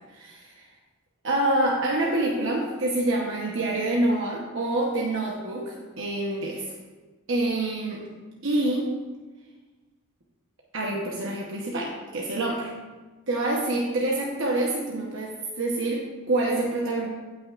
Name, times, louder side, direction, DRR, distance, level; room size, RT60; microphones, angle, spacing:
voice 1, 0.1-0.7 1.2-6.7 7.3-8.0 8.4-8.9 10.7-12.7 13.3-17.1, right 2 dB, 60° right, -2 dB, 1.1 m, -26 dB
16.5 x 6.2 x 2.5 m, 1.3 s
head